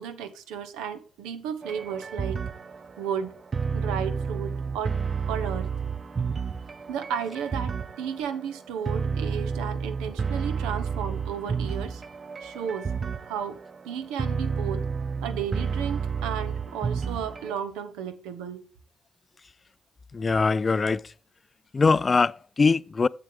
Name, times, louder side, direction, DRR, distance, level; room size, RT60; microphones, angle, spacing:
voice 1, 0.0-2.4 3.0-3.3 3.7-5.0 5.3-5.7 6.9-12.0 12.4-12.9 13.2-13.6 13.8-14.8 15.2-18.7, right 8 dB, 80° right, 0.8 m, -33 dB
sound 1, 1.6-17.5, right 5 dB, 45° right, 0.5 m, -31 dB
voice 2, 20.1-21.1 21.7-23.1, left 4 dB, 40° left, 0.3 m, -22 dB
7.8 x 7.4 x 3.5 m
hypercardioid pair, 40°, 0 cm